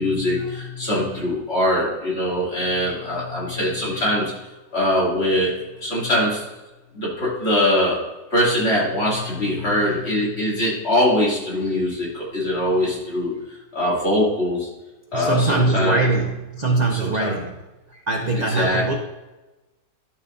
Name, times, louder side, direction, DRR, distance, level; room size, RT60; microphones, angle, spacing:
voice 1, 0.0-4.3 4.7-5.5 5.8-6.4 6.9-8.0 8.3-13.4 13.7-14.7 15.1-16.0 16.9-17.3 18.5-19.0, left 1 dB, 35° left, -6 dB, 3.0 m, -22 dB
voice 2, 15.1-17.5 18.1-19.0, right 3 dB, 45° right, 1 dB, 0.5 m, -22 dB
12.0 x 7.0 x 2.6 m, 1.1 s
omnidirectional pair, 1.8 m